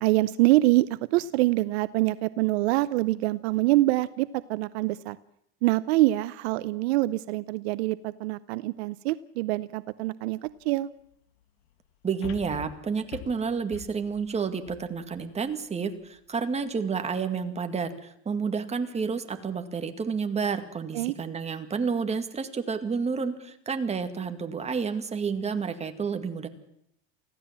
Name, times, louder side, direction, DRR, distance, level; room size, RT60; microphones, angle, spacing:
voice 1, 0.0-5.2 5.6-10.9 20.9-21.1, right 18 dB, 75° right, 17 dB, 0.8 m, -25 dB
sound 1, 10.5-10.6 12.2-15.5 16.0-16.1, left 11 dB, 75° left, 2.2 m, -44 dB
voice 2, 12.0-26.5, right 5 dB, 20° right, 7 dB, 2.1 m, -30 dB
25.0 x 16.0 x 7.5 m, 0.74 s
supercardioid pair, 115°, 32 cm